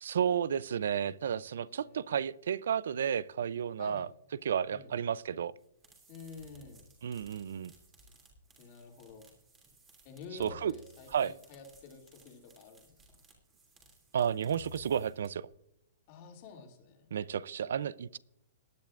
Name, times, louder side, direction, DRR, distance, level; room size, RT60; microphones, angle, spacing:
voice 1, 0.0-4.1 4.4-5.5 7.0-7.7 10.4-10.7 11.1-11.3 14.1-15.5 17.1-18.2, right 8 dB, 70° right, 20 dB, 0.5 m, -32 dB
voice 2, 1.6-2.1 3.8-4.1 4.7-4.9 6.1-6.9 8.6-9.2 10.0-13.2 16.1-17.1, left 5 dB, 35° left, 2 dB, 2.6 m, -50 dB
sound 1, 5.6-15.5, right 3 dB, 15° right, 2.9 m, -62 dB
sound 2, 6.5-7.3 10.4-11.4 14.6-15.5, left 5 dB, 75° left, 1.1 m, -54 dB
19.5 x 10.5 x 2.5 m, 0.81 s
hypercardioid pair, 165°, 0 cm